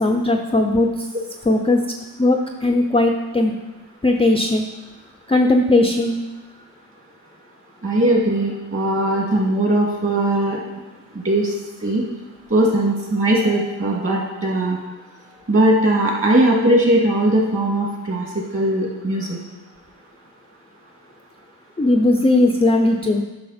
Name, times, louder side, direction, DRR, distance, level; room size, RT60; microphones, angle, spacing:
voice 1, 0.0-1.1 1.4-1.8 2.2-3.5 4.0-4.6 5.3-6.2 21.8-23.2, left 2 dB, 15° left, 3 dB, 0.5 m, -17 dB
voice 2, 7.8-10.6 11.2-11.5 11.8-12.0 12.5-14.8 15.5-19.4, right 1 dB, 30° right, -2 dB, 2.4 m, -19 dB
10.5 x 5.7 x 4.3 m, 1.1 s
cardioid pair, 120°, 41 cm